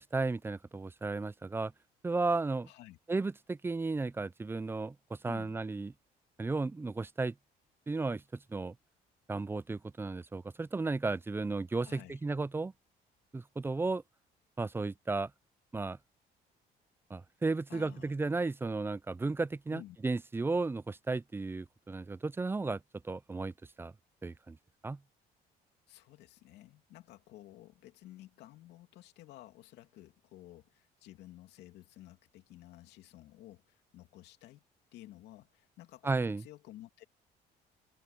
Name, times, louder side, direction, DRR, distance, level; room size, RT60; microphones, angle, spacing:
voice 1, 0.0-1.7 2.0-2.7 3.1-4.9 5.2-5.9 6.4-7.3 7.9-8.2 8.5-8.7 9.3-12.7 13.3-14.0 14.6-15.3 15.7-16.0 17.1-22.8 23.0-23.5 23.8-23.9 24.2-24.6 24.8-25.0 36.0-36.4, right 3 dB, 15° right, 0.5 m, -34 dB
voice 2, 2.6-3.0 5.2-5.6 11.8-12.2 17.7-18.1 19.7-20.0 25.9-34.6 34.9-37.0, left 15 dB, 80° left, 2.8 m, -53 dB
cardioid pair, 110°, 17 cm